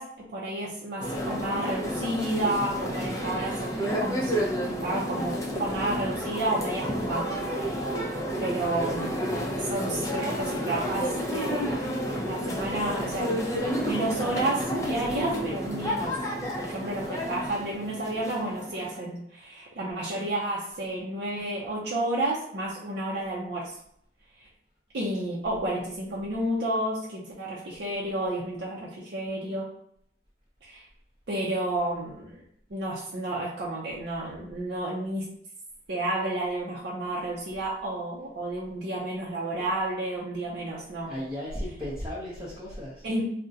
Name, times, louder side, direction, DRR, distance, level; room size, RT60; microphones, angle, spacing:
voice 1, 0.0-7.9 8.4-9.2 9.6-13.4 13.8-16.1 16.6-23.8 24.4-24.5 24.9-29.7 30.6-30.9 31.3-32.4 32.7-35.3 35.9-41.1 43.0-43.2, right 1 dB, 60° right, -6 dB, 0.5 m, -31 dB
sound 1, 1.0-19.0, equal, 20° left, 0.5 m, -30 dB
voice 2, 41.0-43.1, equal, 20° right, -8 dB, 0.7 m, -35 dB
3.6 x 2.1 x 2.7 m, 0.69 s
head